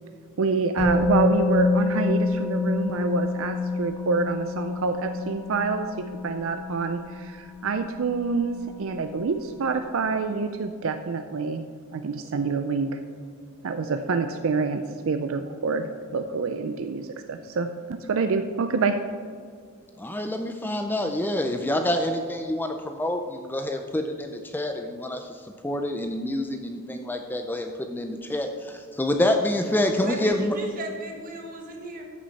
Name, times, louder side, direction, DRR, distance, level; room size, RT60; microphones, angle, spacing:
voice 1, 0.4-5.9 6.2-11.6 11.9-13.0 13.6-18.9, right 4 dB, 65° right, 8 dB, 0.4 m, -27 dB
Musical instrument, 0.8-8.7 9.0-9.1, left 3 dB, 30° left, 2.8 m, -27 dB
voice 2, 20.0-25.3 25.6-30.5, left 1 dB, 10° left, 5 dB, 0.4 m, -27 dB
voice 3, 30.0-32.1, right 2 dB, 40° right, 1 dB, 1.5 m, -35 dB
14.0 x 6.2 x 4.1 m, 2.1 s
head